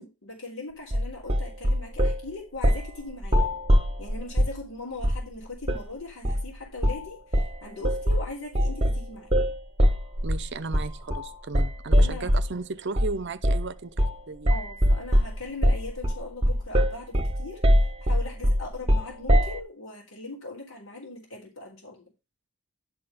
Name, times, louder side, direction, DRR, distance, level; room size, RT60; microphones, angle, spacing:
voice 1, 0.0-3.5 4.0-9.3 12.0-12.3 14.5-17.6 18.1-22.0, left 2 dB, 75° left, 3.6 m, -40 dB
sound 1, 0.9-2.2 2.6-2.9 3.2-4.6 5.0-5.3 5.6-5.9 6.2-6.5 6.8-7.1 7.3-12.6 13.0-13.2 13.4-13.7 14.0-14.2 14.5-19.6, equal, 30° right, 1.5 m, -23 dB
voice 2, 10.2-14.5, right 3 dB, 55° right, 0.7 m, -35 dB
11.0 x 3.9 x 6.7 m
head